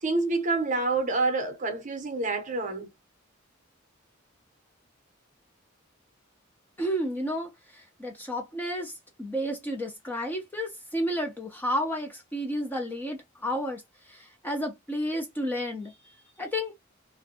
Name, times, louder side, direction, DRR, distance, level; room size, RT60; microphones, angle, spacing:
voice 1, 0.0-2.9, right 3 dB, 35° right, 0.7 m, -27 dB
voice 2, 6.8-15.9 16.4-16.7, equal, 10° left, 0.4 m, -32 dB
2.5 x 2.2 x 2.6 m
head